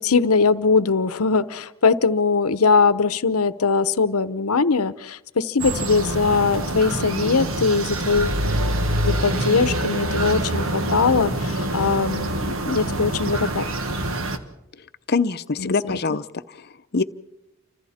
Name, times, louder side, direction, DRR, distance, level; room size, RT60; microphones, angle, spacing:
voice 1, 0.0-8.4 9.1-12.3 12.7-13.7 15.6-16.0, left 4 dB, 80° left, 14 dB, 0.9 m, -21 dB
sound 1, 5.6-14.4, right 1 dB, 65° right, 1.7 m, -25 dB
voice 2, 15.1-17.0, left 4 dB, 45° left, 13 dB, 0.7 m, -24 dB
29.0 x 25.5 x 4.3 m, 0.89 s
head